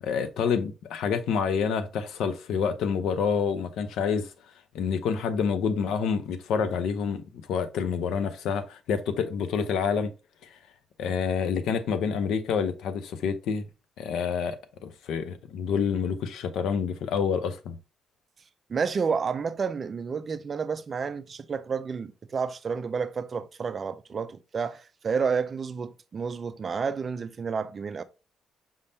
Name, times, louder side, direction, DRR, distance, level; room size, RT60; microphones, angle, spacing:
voice 1, 0.0-4.3 4.7-7.2 7.5-10.1 11.0-13.6 14.0-17.8, left 6 dB, 80° left, 0.6 m, -28 dB
voice 2, 18.7-28.0, right 5 dB, 35° right, 0.4 m, -30 dB
5.3 x 3.5 x 2.7 m
cardioid pair, 125°, 0 cm